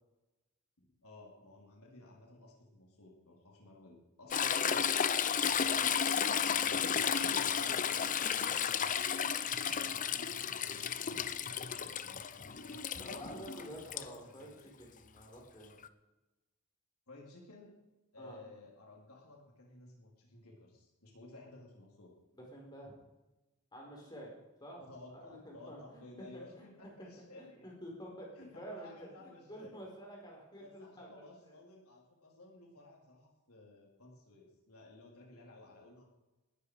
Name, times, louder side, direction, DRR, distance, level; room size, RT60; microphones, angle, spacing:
voice 1, 0.8-5.1 6.6-7.9 9.6-14.6 17.1-17.7 18.1-22.1 24.8-27.7 28.4-29.7 30.6-36.1, left 2 dB, 80° left, -1 dB, 3.9 m, -55 dB
Toilet flush / Trickle dribble, 4.3-14.0 15.8-15.9, left 7 dB, 35° left, 0.7 m, -33 dB
voice 2, 5.4-6.0 8.5-9.0 13.0-15.7 18.2-18.4 22.3-22.9 23.7-24.3 24.6-24.8 25.1-26.6 27.0-27.1 27.4-28.3 28.5-31.5, equal, 20° left, -1 dB, 5.0 m, -50 dB
20.0 x 13.0 x 5.0 m, 1.0 s
head